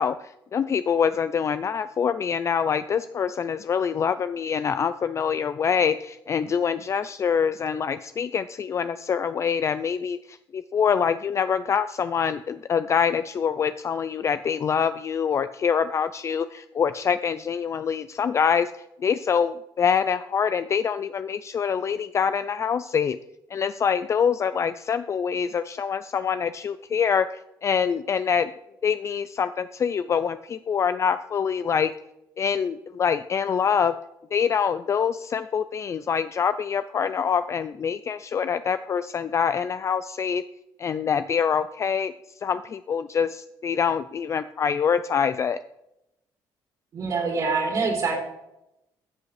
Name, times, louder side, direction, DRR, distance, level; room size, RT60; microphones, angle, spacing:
voice 1, 0.0-18.7 19.0-23.2 23.5-28.5 28.8-31.9 32.4-33.9 34.3-40.4 40.8-42.1 42.4-45.6, left 7 dB, 35° left, 11 dB, 0.4 m, -25 dB
voice 2, 46.9-48.2, right 4 dB, 55° right, -2 dB, 3.2 m, -25 dB
14.0 x 7.8 x 3.2 m, 0.86 s
cardioid pair, 130°, 8 cm